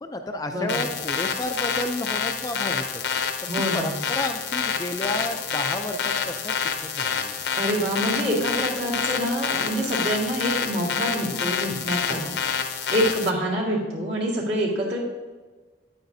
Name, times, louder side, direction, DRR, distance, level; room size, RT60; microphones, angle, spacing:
voice 1, 0.0-6.5 6.8-7.3 12.1-12.2, left 1 dB, 20° left, 5 dB, 0.4 m, -32 dB
sound 1, 0.7-13.3, left 6 dB, 60° left, 0.7 m, -28 dB
voice 2, 3.5-4.0 7.5-12.3 12.9-15.0, equal, 60° right, -4 dB, 2.1 m, -26 dB
9.4 x 8.9 x 2.7 m, 1.3 s
head